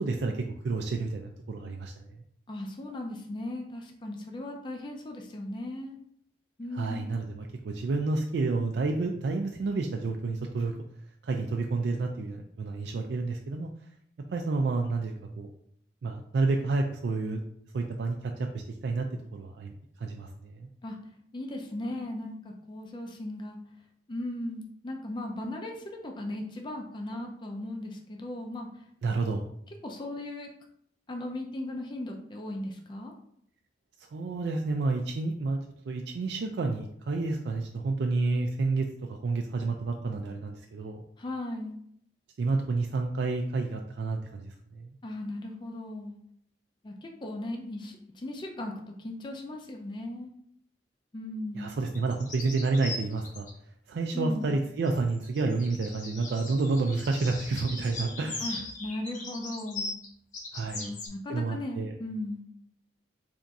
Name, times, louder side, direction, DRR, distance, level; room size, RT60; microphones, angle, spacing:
voice 1, 0.0-2.2 6.7-10.8 11.2-13.7 14.3-15.5 16.0-17.4 17.7-19.1 19.3-19.7 20.0-20.7 29.0-29.5 34.1-35.6 35.9-41.0 42.4-44.9 51.5-53.5 53.9-58.4 60.5-60.9 61.3-61.9, right 3 dB, 70° right, 3 dB, 0.3 m, -30 dB
voice 2, 2.5-6.0 6.6-7.1 20.8-21.0 21.3-23.6 24.1-28.8 29.8-30.5 31.1-33.1 41.2-41.8 45.0-46.1 46.8-48.7 49.0-50.3 51.1-51.7 54.1-54.5 58.4-59.9 60.7-62.4, left 1 dB, 25° left, 2 dB, 0.4 m, -37 dB
sound 1, 51.9-53.5 54.8-61.1, left 2 dB, 45° left, 0.8 m, -40 dB
3.4 x 2.5 x 4.0 m, 0.69 s
head